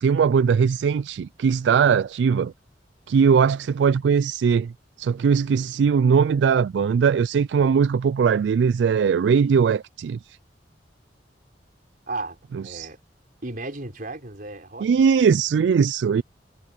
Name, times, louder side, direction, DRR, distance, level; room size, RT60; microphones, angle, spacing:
voice 1, 0.0-2.5 3.1-4.7 5.0-10.2 12.7-12.9 14.8-16.2, right 6 dB, 75° right, 0.3 m, -20 dB
voice 2, 12.1-13.0 13.4-14.9, right 2 dB, 50° right, 4.5 m, -34 dB
head